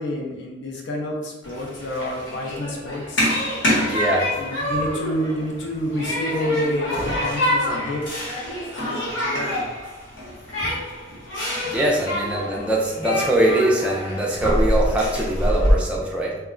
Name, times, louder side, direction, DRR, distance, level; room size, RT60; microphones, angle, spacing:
voice 1, 0.0-3.2 4.4-8.2 8.7-9.6, left 1 dB, 70° left, 0 dB, 0.6 m, -28 dB
Human group actions, 1.4-15.7, equal, 90° left, 1.1 m, -26 dB
voice 2, 3.8-4.3 11.6-16.4, right 1 dB, 5° right, -3 dB, 0.4 m, -22 dB
2.2 x 2.1 x 3.6 m, 1.0 s
head